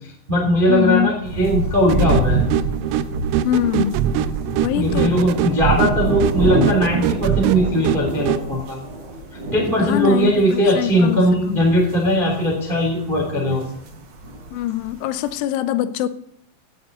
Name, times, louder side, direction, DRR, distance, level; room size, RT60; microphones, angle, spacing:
voice 1, 0.0-2.4 4.7-8.8 9.5-13.7, equal, 20° right, 1.3 m, -19 dB
voice 2, 0.7-1.1 3.4-4.0 4.6-5.2 9.8-11.6 14.5-16.1, left 12 dB, 80° left, 2.9 m, -23 dB
sound 1, 1.2-14.9 15.3-15.4, right 1 dB, 60° right, 3.9 m, -27 dB
sound 2, 1.9-8.5, right 10 dB, 90° right, 3.3 m, -23 dB
17.0 x 9.0 x 4.0 m
omnidirectional pair, 5.7 m